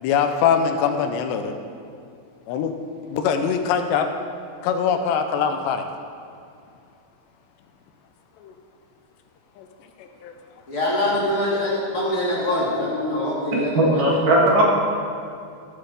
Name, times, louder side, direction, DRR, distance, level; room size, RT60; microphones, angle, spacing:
voice 1, 0.0-1.6 2.5-2.8 3.1-4.1 4.6-5.8 8.4-8.5 9.6-9.7 10.0-10.3, left 7 dB, 90° left, 6 dB, 2.9 m, -22 dB
voice 2, 10.7-14.1, left 1 dB, 35° left, -7 dB, 3.4 m, -24 dB
voice 3, 13.5-14.6, right 1 dB, 60° right, -3 dB, 2.6 m, -18 dB
14.5 x 6.9 x 7.0 m, 2.4 s
omnidirectional pair, 4.9 m